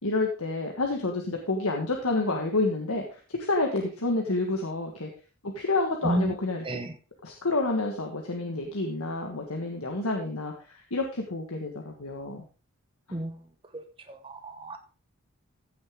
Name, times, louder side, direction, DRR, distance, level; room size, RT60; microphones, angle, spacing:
voice 1, 0.0-5.1 5.4-6.8 7.2-12.4, left 2 dB, 80° left, 2 dB, 1.6 m, -29 dB
voice 2, 6.0-6.3 6.6-6.9 13.1-13.4 13.7-13.8 14.1-14.8, right 1 dB, 25° right, 6 dB, 1.0 m, -31 dB
14.5 x 6.6 x 3.7 m, 0.35 s
head